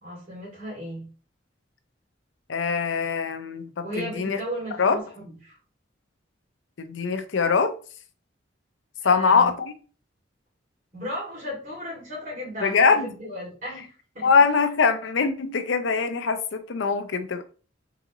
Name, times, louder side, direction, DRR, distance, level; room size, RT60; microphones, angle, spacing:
voice 1, 0.0-1.1 3.8-5.6 9.0-9.5 10.9-14.3, equal, 45° right, 2.3 m, -35 dB
voice 2, 2.5-4.4 4.8-5.0 6.8-7.7 9.0-9.7 12.6-13.1 14.2-17.4, left 5 dB, 80° left, 0.6 m, -22 dB
3.8 x 3.8 x 2.9 m
head